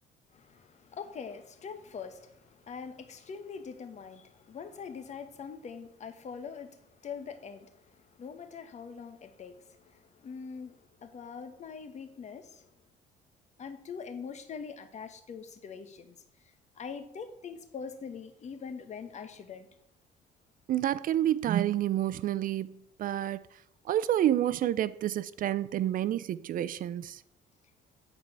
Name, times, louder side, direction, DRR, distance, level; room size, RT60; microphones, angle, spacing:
voice 1, 0.3-6.8 7.0-12.7 13.6-16.1 16.8-19.7, left 6 dB, 45° left, 1.2 m, -43 dB
voice 2, 20.7-23.4 23.9-27.2, right 12 dB, 55° right, 0.5 m, -29 dB
9.0 x 4.8 x 7.3 m
cardioid pair, 110°, 17 cm